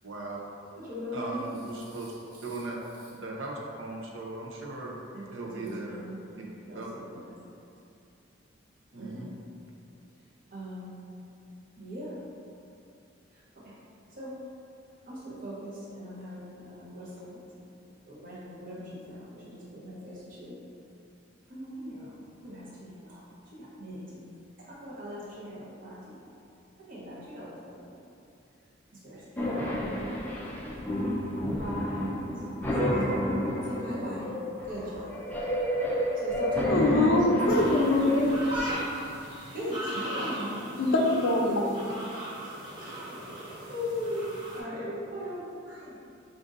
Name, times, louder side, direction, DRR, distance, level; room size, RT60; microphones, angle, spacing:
voice 1, 0.0-0.4 1.1-2.1 2.4-2.8 3.1-5.0 5.3-6.0 6.7-6.9 8.9-9.3, right 2 dB, 70° right, -2 dB, 0.6 m, -38 dB
voice 2, 0.8-1.5 1.8-2.6 5.1-5.3 5.6-6.2 6.7-7.3 9.0-9.3 10.5-11.0 11.8-12.2 13.3-13.7 14.1-14.3 15.0-17.5 17.8-20.6 21.5-24.3 24.6-26.2 26.9-27.9 28.9-29.5 31.5-32.3 32.7-33.4 33.6-34.3 34.6-35.1 36.1-37.7 38.4-38.9 39.5-40.8 42.4-43.2 43.7-46.0, equal, 45° right, -8 dB, 0.9 m, -39 dB
sound 1, 29.4-38.7, left 1 dB, 10° left, 0.4 m, -30 dB
voice 3, 36.7-38.3 40.8-41.6, left 2 dB, 75° left, 0 dB, 0.5 m, -24 dB
sound 2, 37.5-44.6, right 1 dB, 20° right, 0.7 m, -40 dB
5.1 x 2.5 x 2.5 m, 2.6 s
head